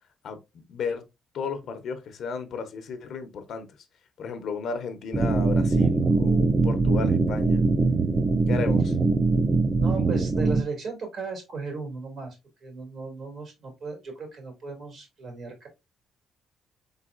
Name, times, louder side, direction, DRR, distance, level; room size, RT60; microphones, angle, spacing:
voice 1, 0.7-1.0 1.3-3.7 4.2-7.6 8.5-8.9, left 5 dB, 70° left, 0.8 m, -33 dB
sound 1, 5.1-10.6, right 3 dB, 35° right, 0.6 m, -22 dB
voice 2, 9.8-12.4 12.6-15.7, right 4 dB, 65° right, 2.4 m, -36 dB
4.1 x 4.0 x 2.5 m
cardioid pair, 90°, 0 cm